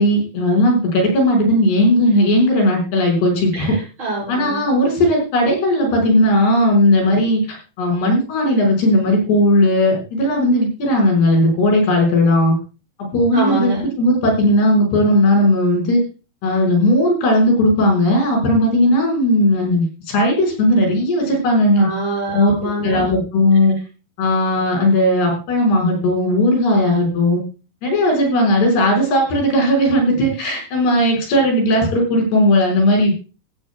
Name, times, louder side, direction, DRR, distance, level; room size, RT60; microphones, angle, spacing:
voice 1, 0.0-3.8 4.3-12.5 13.1-16.0 16.4-21.9 22.3-22.5 22.8-23.8 24.2-27.4 27.8-33.1, left 1 dB, 85° left, 1 dB, 7.7 m, -16 dB
voice 2, 3.5-4.7 13.3-13.8 21.8-23.0, right 1 dB, 30° right, -1 dB, 6.8 m, -25 dB
16.5 x 15.5 x 2.4 m, 0.33 s
omnidirectional pair, 4.6 m